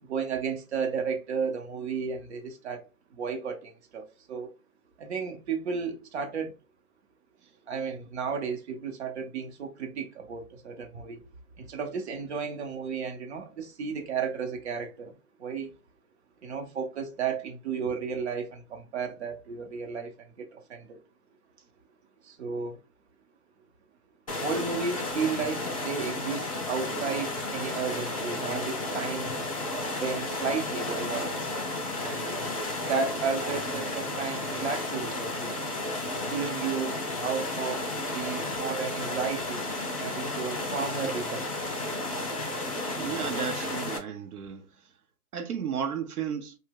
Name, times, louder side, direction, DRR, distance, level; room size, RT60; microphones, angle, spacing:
voice 1, 0.0-2.9 3.1-4.5 5.0-6.5 7.7-11.2 11.6-15.1 15.4-15.7 16.4-21.0 22.2-22.8 24.4-29.3 30.0-31.7 32.0-32.4 32.8-35.6 36.3-37.8 38.1-39.6 40.0-41.5, right 5 dB, 50° right, 0.7 m, -33 dB
sound 1, 24.3-44.0, left 2 dB, 25° left, 0.4 m, -33 dB
voice 2, 43.0-44.7 45.3-46.6, right 7 dB, 80° right, 0.7 m, -33 dB
2.8 x 2.1 x 3.5 m
hypercardioid pair, 155°, 44 cm